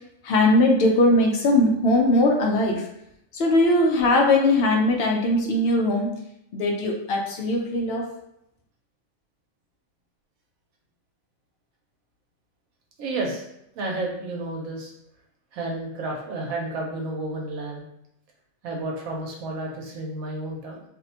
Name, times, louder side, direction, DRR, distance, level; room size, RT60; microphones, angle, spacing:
voice 1, 0.2-2.9 3.3-6.1 6.5-8.1, left 1 dB, 65° left, 1 dB, 0.6 m, -20 dB
voice 2, 13.0-13.5 13.8-14.9 15.5-17.8 18.6-20.8, right 2 dB, 85° right, -1 dB, 1.1 m, -31 dB
2.7 x 2.1 x 2.7 m, 0.78 s
omnidirectional pair, 1.4 m